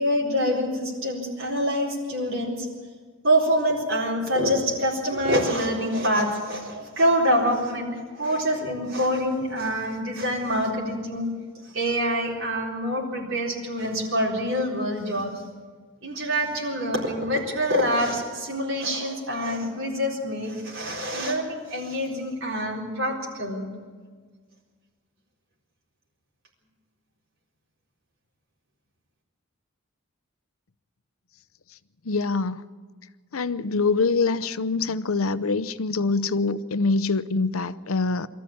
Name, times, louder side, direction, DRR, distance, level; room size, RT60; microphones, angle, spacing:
voice 1, 0.0-2.7 3.2-11.3 11.7-15.3 16.0-23.6, equal, 65° right, -4 dB, 4.2 m, -25 dB
voice 2, 32.1-32.6 33.3-38.3, left 3 dB, 80° left, 15 dB, 0.7 m, -24 dB
23.0 x 14.5 x 8.7 m, 1.5 s
head